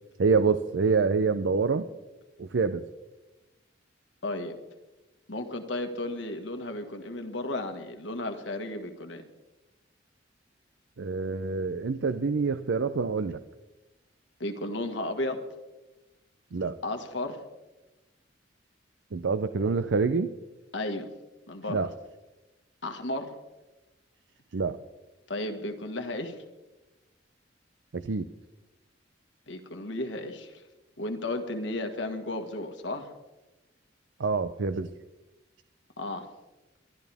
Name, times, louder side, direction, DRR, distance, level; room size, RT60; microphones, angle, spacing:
voice 1, 0.2-1.9 2.4-2.8 11.0-13.4 16.5-16.8 19.1-20.3 21.7-21.9 24.5-24.8 27.9-28.3 34.2-34.9, right 4 dB, 80° right, 11 dB, 0.6 m, -26 dB
voice 2, 4.2-4.6 5.3-9.2 14.4-15.4 16.8-17.4 20.7-21.1 21.5-21.9 22.8-23.3 25.3-26.4 29.5-30.6 31.0-33.1 36.0-36.3, left 2 dB, 80° left, 5 dB, 1.8 m, -34 dB
23.0 x 12.5 x 3.5 m, 1.1 s
head